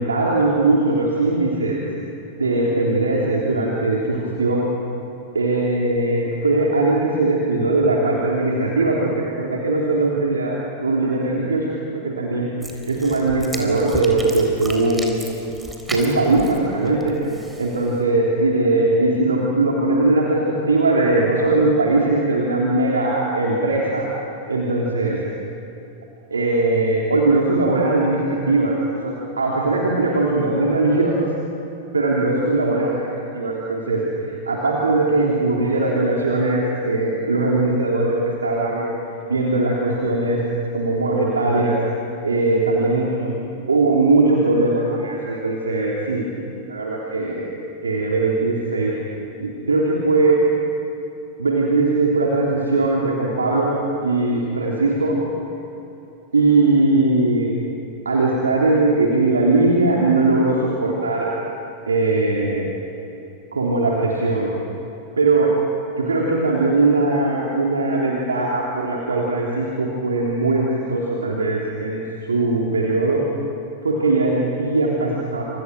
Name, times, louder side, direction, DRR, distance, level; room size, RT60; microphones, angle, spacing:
voice 1, 0.0-1.8 2.4-4.7 5.3-11.7 11.9-12.5 12.9-15.2 15.9-17.2 17.6-24.1 24.5-25.2 26.3-31.3 31.9-38.9 39.3-40.4 40.7-41.8 42.2-43.4 43.7-47.5 47.8-49.0 49.4-50.4 51.4-53.7 54.0-55.2 56.3-57.5 58.1-61.3 61.9-62.7 63.5-64.5 65.2-65.5 66.0-72.0 72.3-73.2 73.8-75.4, right 2 dB, 75° right, -3 dB, 3.4 m, -20 dB
sound 1, 12.6-18.0, right 1 dB, 5° right, 3.9 m, -35 dB
29.5 x 27.0 x 6.2 m, 2.8 s
figure-of-eight pair, 90°, 0 cm